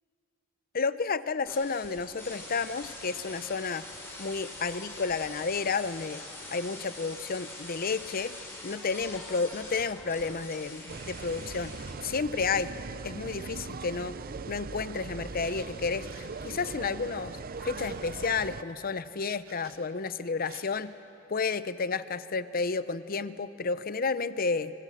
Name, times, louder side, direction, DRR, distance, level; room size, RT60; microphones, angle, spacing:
voice 1, 0.7-3.8 4.2-6.2 6.5-8.3 8.6-11.7 12.0-12.7 13.0-14.2 14.5-17.4 17.6-20.9 21.3-24.7, left 4 dB, 45° left, 14 dB, 0.7 m, -31 dB
sound 1, 1.5-11.9, left 2 dB, 10° left, 4.5 m, -44 dB
sound 2, 10.9-18.6, right 4 dB, 45° right, 0.6 m, -40 dB
sound 3, 11.8-14.8 15.2-16.3 17.4-18.0 19.4-19.8 20.3-20.7, right 4 dB, 90° right, 3.0 m, -54 dB
27.5 x 23.5 x 6.6 m, 2.8 s
head